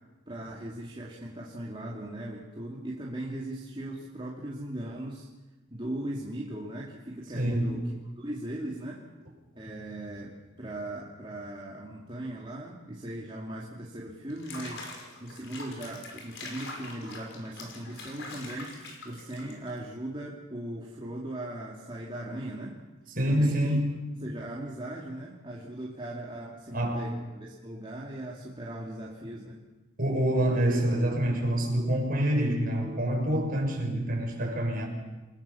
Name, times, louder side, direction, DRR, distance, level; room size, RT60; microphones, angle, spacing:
voice 1, 0.3-5.3 5.7-7.8 8.2-9.0 9.6-10.3 10.6-14.9 15.2-18.8 19.0-22.8 23.3-23.8 24.2-29.6, right 1 dB, 25° right, -4 dB, 2.8 m, -38 dB
voice 2, 7.3-7.7 23.1-24.0 26.7-27.1 30.0-34.8, right 1 dB, 45° right, 0 dB, 6.7 m, -26 dB
Water / Bathtub (filling or washing), 14.3-19.8, left 2 dB, 60° left, 5.7 m, -44 dB
29.5 x 19.5 x 7.2 m, 1.2 s
head